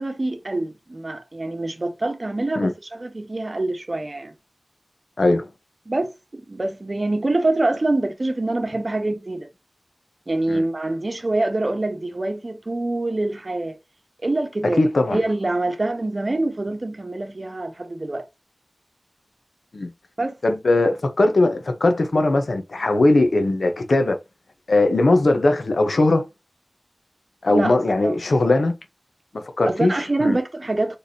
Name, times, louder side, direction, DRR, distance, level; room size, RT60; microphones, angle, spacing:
voice 1, 0.0-4.3 5.9-9.5 10.3-13.8 14.2-14.8 15.1-18.2 20.2-20.4 27.5-27.8 28.0-28.1 29.6-31.0, right 2 dB, 50° right, 1.0 m, -25 dB
voice 2, 14.6-15.2 19.7-19.9 20.4-24.2 24.7-26.3 27.4-28.7 29.3-29.9 30.2-30.4, left 2 dB, 90° left, 0.8 m, -19 dB
4.1 x 3.4 x 2.7 m
wide cardioid pair, 70°, 0 cm